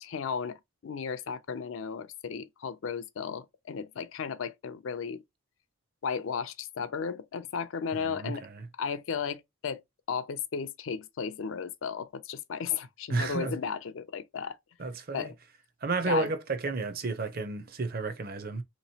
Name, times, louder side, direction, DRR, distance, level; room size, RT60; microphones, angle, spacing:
voice 1, 0.0-5.2 6.0-8.5 8.8-9.8 10.1-14.6 15.1-15.3 16.0-16.3, left 6 dB, 70° left, 0.4 m, -34 dB
voice 2, 7.9-8.6 13.1-13.5 14.8-15.3 15.8-18.6, right 3 dB, 45° right, 0.5 m, -32 dB
3.6 x 3.0 x 2.8 m
head